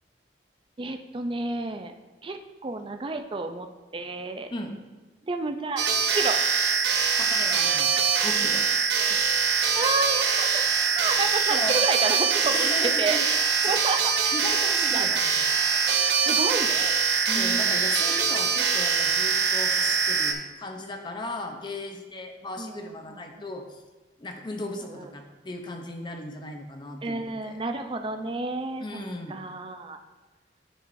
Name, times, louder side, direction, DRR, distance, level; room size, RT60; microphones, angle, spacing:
voice 1, 0.8-1.9 2.2-3.7 3.9-4.5 5.2-6.4 9.0-9.2 9.7-10.6 10.9-12.7 13.0-14.5 14.8-15.2 16.2-16.9 17.3-17.8 22.6-23.2 24.5-25.1 27.0-29.0 29.3-30.0, right 3 dB, 30° right, 6 dB, 0.4 m, -31 dB
sound 1, 5.8-20.3, right 6 dB, 70° right, 0.6 m, -23 dB
voice 2, 7.2-8.6 11.5-11.8 12.5-13.3 13.6-13.7 14.3-15.4 17.3-23.8 24.2-27.6 28.8-29.4, left 2 dB, 25° left, 4 dB, 0.7 m, -36 dB
9.9 x 4.7 x 2.6 m, 1.2 s
head